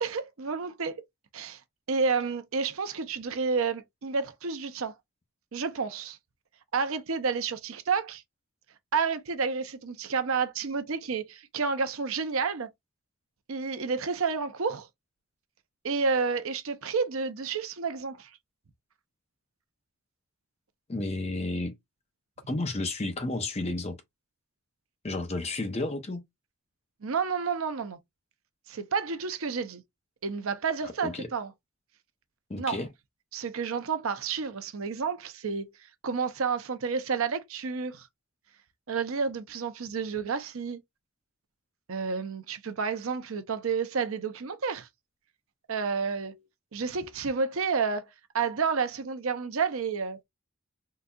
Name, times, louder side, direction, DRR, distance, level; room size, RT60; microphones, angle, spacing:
voice 1, 0.0-1.0 1.3-1.6 1.9-4.9 5.5-6.2 6.7-8.2 8.9-12.7 13.5-14.9 15.8-18.3 27.0-28.0 28.7-29.8 30.2-31.5 32.6-32.8 33.3-35.7 36.0-38.1 38.9-40.8 41.9-44.9 45.7-46.4 46.7-50.2, right 5 dB, 75° right, 0.6 m, -30 dB
voice 2, 20.9-21.7 22.5-24.0 25.0-26.2 31.0-31.3 32.5-32.9, left 2 dB, 30° left, 0.6 m, -31 dB
3.8 x 2.7 x 2.3 m
head